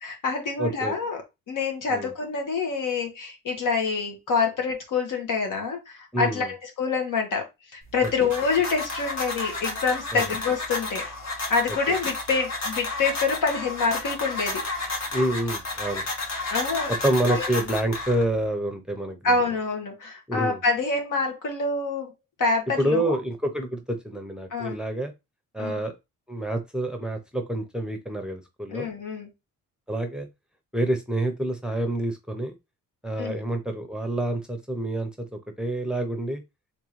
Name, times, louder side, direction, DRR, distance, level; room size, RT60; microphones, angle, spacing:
voice 1, 0.0-1.2 1.5-11.0 11.5-14.6 16.5-16.9 17.3-17.4 19.2-22.1 22.4-23.2 24.5-24.8 25.6-25.8 28.7-29.3 33.2-33.4, left 4 dB, 65° left, 3 dB, 1.5 m, -26 dB
voice 2, 0.6-0.9 1.9-2.1 6.1-6.5 8.0-8.1 10.1-10.2 11.9-12.0 15.1-16.1 17.0-19.2 20.3-20.6 22.8-25.1 25.5-25.9 26.3-28.9 29.9-30.3 30.7-32.5 33.0-35.1 35.6-36.4, right 1 dB, ahead, 6 dB, 0.7 m, -27 dB
sound 1, 7.8-18.5, left 2 dB, 50° left, 1.6 m, -32 dB
3.7 x 3.6 x 3.1 m, 0.23 s
cardioid pair, 130°, 33 cm